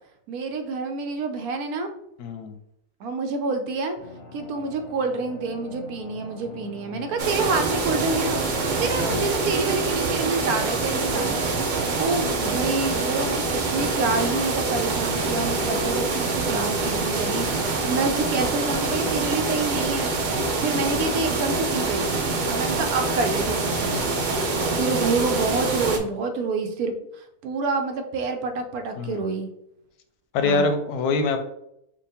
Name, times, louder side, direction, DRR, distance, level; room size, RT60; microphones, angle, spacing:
voice 1, 0.3-1.9 3.0-4.0 4.3-11.4 12.0-20.1 20.6-22.1 22.5-24.1 24.7-27.0 27.4-29.5 30.4-30.7, right 3 dB, 75° right, 6 dB, 1.1 m, -27 dB
voice 2, 2.2-2.5 6.9-7.1 9.0-9.2 29.0-29.2 30.3-31.4, left 3 dB, 90° left, 7 dB, 1.1 m, -24 dB
sound 1, 4.0-22.3, left 2 dB, 55° left, 0.8 m, -42 dB
sound 2, 7.2-26.0, right 3 dB, 60° right, 0.5 m, -25 dB
5.0 x 2.4 x 3.5 m, 0.79 s
omnidirectional pair, 1.6 m